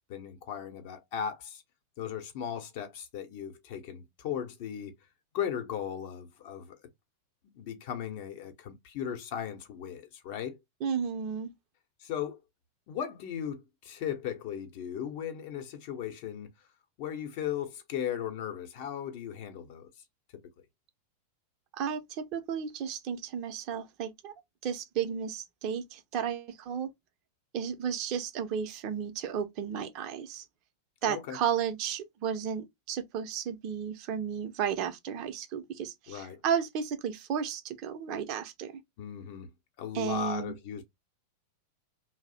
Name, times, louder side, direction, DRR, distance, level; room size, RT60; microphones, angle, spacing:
voice 1, 0.1-1.6 2.0-4.9 5.3-6.8 7.5-10.6 12.0-12.4 12.9-16.5 17.0-19.9 20.3-20.4 31.0-31.4 36.1-36.4 39.0-39.5 39.8-40.8, left 9 dB, 50° left, 0.8 m, -37 dB
voice 2, 10.8-11.5 21.8-24.3 24.6-26.9 27.5-30.4 31.0-38.7 39.9-40.5, right 8 dB, 40° right, 0.6 m, -33 dB
2.6 x 2.0 x 3.9 m
figure-of-eight pair, 90°, 0 cm